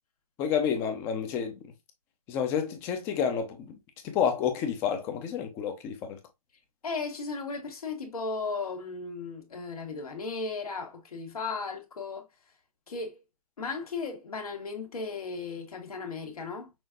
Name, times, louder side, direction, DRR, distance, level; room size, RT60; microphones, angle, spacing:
voice 1, 0.4-1.6 2.3-3.8 4.0-6.2, left 7 dB, 15° left, 0.5 m, -29 dB
voice 2, 6.8-12.3 12.9-13.2 13.6-16.7, left 4 dB, 75° left, 1.6 m, -36 dB
6.0 x 2.6 x 2.4 m
hypercardioid pair, 160°, 19 cm